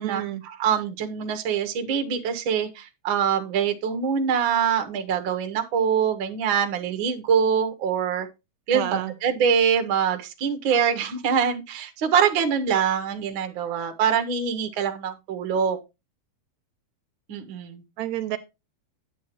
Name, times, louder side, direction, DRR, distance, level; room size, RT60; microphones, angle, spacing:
voice 1, 0.0-0.4 8.7-9.1 18.0-18.4, right 13 dB, 80° right, 1.9 m, -29 dB
voice 2, 0.6-8.3 8.7-15.8 17.3-17.8, right 7 dB, 60° right, 1.3 m, -24 dB
9.8 x 8.2 x 3.0 m
omnidirectional pair, 3.4 m